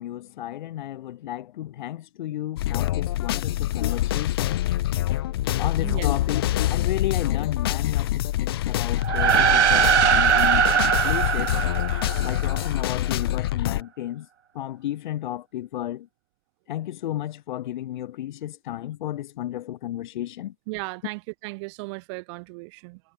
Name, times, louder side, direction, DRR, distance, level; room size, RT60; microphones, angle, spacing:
voice 1, 0.0-4.7 5.6-10.8 11.0-11.6 12.2-14.3 14.5-16.1 16.7-20.5, left 13 dB, 30° left, 7.5 m, -33 dB
sound 1, 2.6-13.8, left 14 dB, 15° left, 1.1 m, -25 dB
sound 2, 9.0-12.7, right 8 dB, 50° right, 1.7 m, -21 dB
voice 2, 20.7-23.0, right 29 dB, 20° right, 3.2 m, -35 dB
hypercardioid pair, 165°, 44 cm